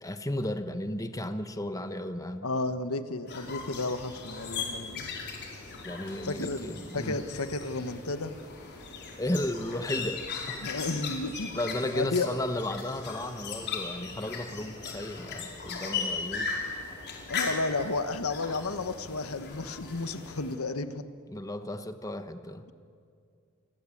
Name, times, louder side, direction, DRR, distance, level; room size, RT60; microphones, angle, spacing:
voice 1, 0.0-2.5 5.8-7.2 9.2-10.7 11.5-16.5 21.3-22.6, left 1 dB, 15° left, 9 dB, 1.2 m, -34 dB
voice 2, 2.4-5.1 6.2-6.6 6.9-8.3 10.6-11.5 11.9-12.3 17.3-21.0, left 3 dB, 90° left, 10 dB, 1.4 m, -32 dB
sound 1, 3.3-20.5, left 5 dB, 55° left, 4.7 m, -38 dB
28.5 x 21.5 x 8.6 m, 2.3 s
head